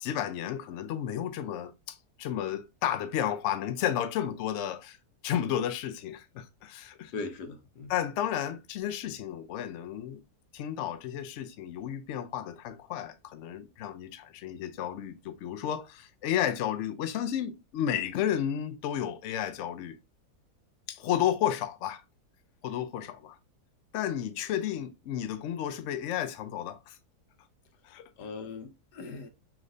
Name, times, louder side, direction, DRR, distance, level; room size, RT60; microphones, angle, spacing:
voice 1, 0.0-5.0 5.2-7.1 7.9-10.2 10.5-20.0 20.9-22.0 22.6-23.4 23.9-27.0 27.8-28.1, left 10 dB, 70° left, 0.7 m, -32 dB
voice 2, 7.1-7.9 28.2-29.3, left 3 dB, 85° left, 1.4 m, -39 dB
4.9 x 3.1 x 2.5 m
omnidirectional pair, 1.7 m